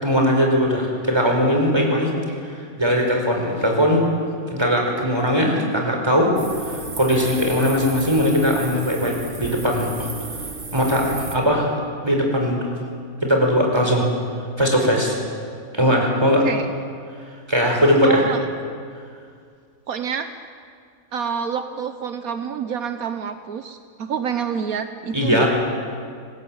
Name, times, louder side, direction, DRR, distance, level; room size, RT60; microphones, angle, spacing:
voice 1, 0.0-2.1 2.8-4.0 4.5-6.3 6.6-10.1 10.7-11.7 12.0-12.7 13.2-14.1 14.6-15.2 15.7-16.5 17.5-18.2 25.1-25.5, equal, 15° right, 1 dB, 5.0 m, -19 dB
sound 1, 6.4-11.4, right 3 dB, 40° right, 1.9 m, -34 dB
voice 2, 18.0-18.4 19.9-20.3 21.1-25.5, right 7 dB, 75° right, 8 dB, 1.4 m, -27 dB
26.5 x 20.5 x 8.8 m, 2.1 s
omnidirectional pair, 1.5 m